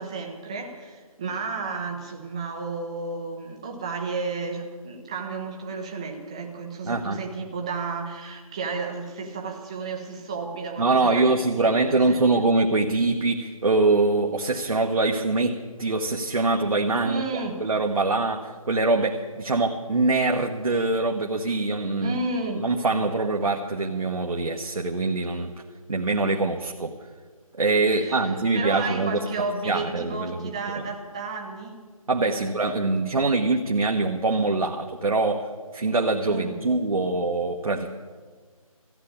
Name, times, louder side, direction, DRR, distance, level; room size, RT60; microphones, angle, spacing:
voice 1, 0.0-12.5 17.0-17.6 22.0-22.7 27.9-31.8 32.3-32.4 36.3-36.6, right 4 dB, 10° right, 2 dB, 0.6 m, -33 dB
voice 2, 6.8-7.2 10.8-17.2 17.6-22.2 22.6-25.5 25.9-26.9 27.6-29.2 29.6-30.5 30.8-30.9 32.1-37.9, right 3 dB, 70° right, 2 dB, 1.2 m, -24 dB
14.0 x 9.4 x 8.5 m, 1.5 s
figure-of-eight pair, 165°, 19 cm